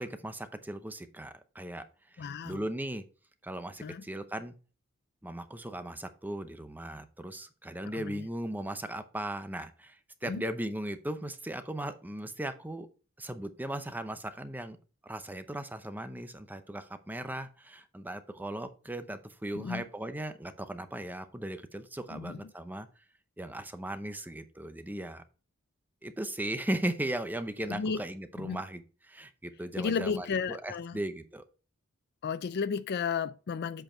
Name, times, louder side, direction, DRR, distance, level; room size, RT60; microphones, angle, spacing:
voice 1, 0.0-1.8 2.1-3.0 3.4-4.5 5.2-10.0 10.2-12.9 13.2-14.8 15.0-22.9 23.4-25.2 26.0-31.4, right 1 dB, 10° right, 0.6 m, -37 dB
voice 2, 2.2-2.6 3.8-4.0 7.9-8.2 10.2-10.4 19.5-19.8 22.1-22.4 27.7-28.0 28.4-28.6 29.8-31.0 32.2-33.8, left 5 dB, 50° left, 0.4 m, -33 dB
7.9 x 4.6 x 4.3 m
head